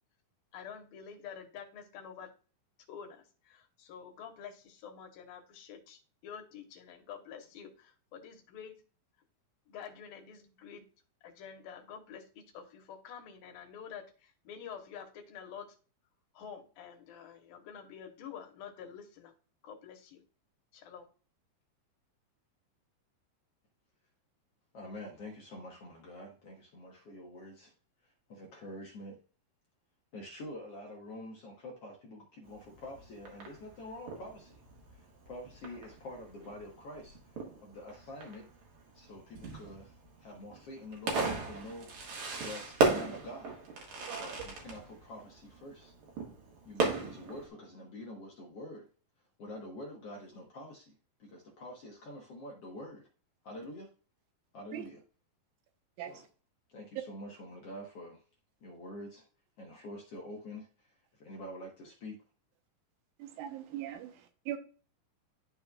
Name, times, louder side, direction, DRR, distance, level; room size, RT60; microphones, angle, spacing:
voice 1, 0.5-2.3 2.9-8.8 9.7-10.8 11.2-15.8 16.3-19.3 19.6-20.2 20.7-21.1, left 7 dB, 75° left, 3.0 m, -48 dB
voice 2, 24.7-27.7 28.3-29.2 30.1-34.6 34.9-37.2 37.6-38.5 38.9-41.9 42.3-43.6 44.1-45.9 46.6-48.9 49.4-50.9 51.2-53.1 53.4-53.9 54.5-55.0 56.1-56.2 56.7-58.2 58.6-59.3 59.6-60.7 61.2-62.2, left 1 dB, 60° left, 1.7 m, -46 dB
Fireworks, 32.4-47.5, right 3 dB, 60° right, 2.7 m, -37 dB
voice 3, 63.2-64.6, right 11 dB, 80° right, 2.7 m, -41 dB
12.5 x 4.3 x 2.3 m
omnidirectional pair, 4.2 m